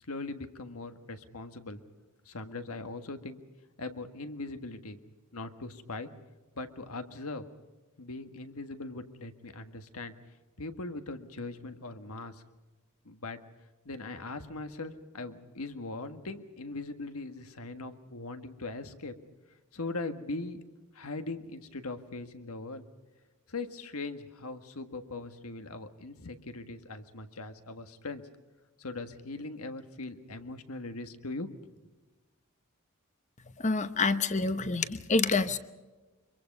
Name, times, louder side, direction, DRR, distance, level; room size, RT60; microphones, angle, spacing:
voice 1, 0.0-1.8 2.2-3.4 3.8-5.0 5.3-6.1 6.5-7.4 8.0-10.1 10.6-12.4 13.0-13.4 13.8-19.1 19.7-20.6 20.9-22.8 23.5-28.2 28.8-31.5, left 3 dB, 75° left, 8 dB, 1.6 m, -40 dB
voice 2, 33.6-35.6, left 3 dB, 35° left, 12 dB, 0.9 m, -27 dB
25.0 x 23.0 x 5.4 m, 1.2 s
head